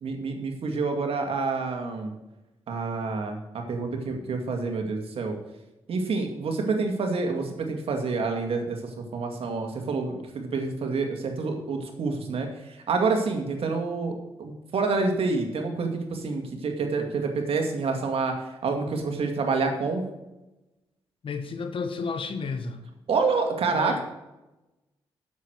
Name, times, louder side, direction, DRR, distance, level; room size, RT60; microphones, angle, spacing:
voice 1, 0.0-2.1 2.7-5.4 5.9-20.0 23.1-24.0, right 4 dB, 65° right, 3 dB, 2.3 m, -28 dB
voice 2, 21.2-22.8 23.7-24.0, left 4 dB, 55° left, 8 dB, 1.4 m, -32 dB
8.4 x 7.5 x 6.4 m, 0.99 s
supercardioid pair, 55°, 10 cm